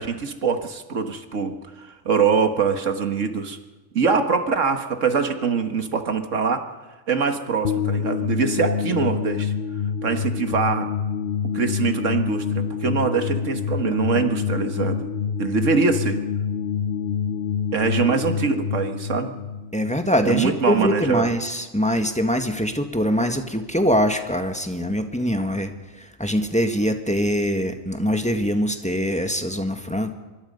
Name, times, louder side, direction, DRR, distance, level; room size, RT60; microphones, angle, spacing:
voice 1, 0.0-3.6 3.9-6.7 7.1-9.5 10.0-10.9 11.5-15.1 15.4-16.2 17.7-19.4 20.2-21.3, right 5 dB, 90° right, 7 dB, 2.0 m, -23 dB
sound 1, 7.6-20.8, left 7 dB, 55° left, 1.0 m, -27 dB
voice 2, 19.7-30.1, equal, 5° left, 6 dB, 1.6 m, -23 dB
25.5 x 22.5 x 5.5 m, 1.2 s
omnidirectional pair, 1.3 m